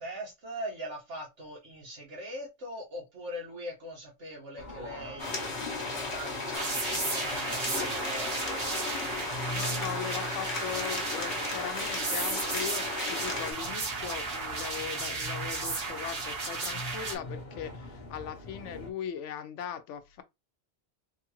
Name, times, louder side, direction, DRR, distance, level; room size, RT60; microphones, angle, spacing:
voice 1, 0.0-5.5 6.0-8.4, equal, 85° right, 1.7 m, -41 dB
sound 1, 4.6-18.9, left 2 dB, 45° left, 0.9 m, -43 dB
sound 2, 5.2-13.5, left 3 dB, 70° left, 1.2 m, -35 dB
sound 3, 6.5-17.1, right 3 dB, 60° right, 1.3 m, -34 dB
voice 2, 9.5-20.2, left 9 dB, 85° left, 0.9 m, -39 dB
3.7 x 2.4 x 2.9 m
omnidirectional pair, 1.2 m